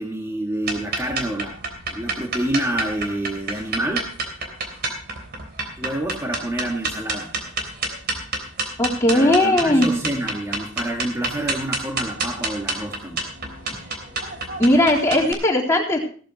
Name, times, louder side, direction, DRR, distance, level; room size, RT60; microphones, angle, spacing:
voice 1, 0.0-1.6 1.9-4.1 5.8-7.3 9.1-13.3, right 1 dB, 15° right, -1 dB, 1.8 m, -28 dB
sound 1, 0.6-15.3, right 3 dB, 50° right, 3.3 m, -29 dB
voice 2, 8.8-9.9 14.6-16.0, left 1 dB, 15° left, -4 dB, 3.7 m, -18 dB
17.0 x 13.5 x 3.0 m, 0.42 s
head